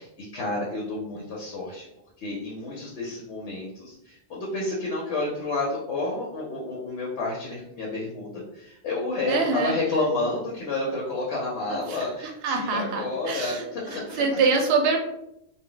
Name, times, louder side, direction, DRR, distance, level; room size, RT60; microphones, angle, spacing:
voice 1, 0.0-1.9 2.2-14.2, left 2 dB, 85° left, -3 dB, 1.0 m, -30 dB
voice 2, 9.3-9.8 11.7-12.1 12.4-15.0, right 4 dB, 70° right, 3 dB, 0.8 m, -25 dB
2.2 x 2.0 x 3.7 m, 0.80 s
omnidirectional pair, 1.1 m